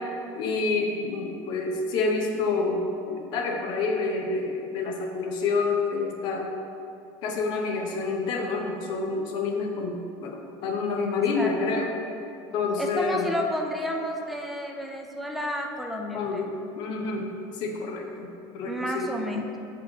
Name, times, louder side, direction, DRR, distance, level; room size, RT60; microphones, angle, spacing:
voice 1, 0.0-2.8 3.1-6.5 7.2-10.0 10.2-12.0 12.5-13.3 16.1-17.3 17.5-19.1, left 4 dB, 55° left, 2 dB, 0.9 m, -28 dB
voice 2, 12.8-16.5 18.6-19.6, equal, ahead, 1 dB, 0.5 m, -31 dB
8.2 x 4.6 x 3.2 m, 2.7 s
cardioid pair, 150°, 10 cm